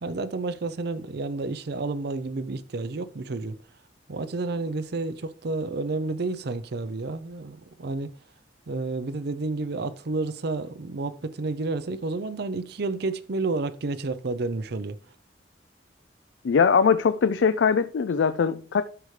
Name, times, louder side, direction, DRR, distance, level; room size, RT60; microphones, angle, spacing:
voice 1, 0.0-3.6 4.1-8.1 8.7-15.0, right 3 dB, 65° right, 0.6 m, -30 dB
voice 2, 16.4-18.8, left 6 dB, 85° left, 0.4 m, -21 dB
12.0 x 5.0 x 3.2 m
head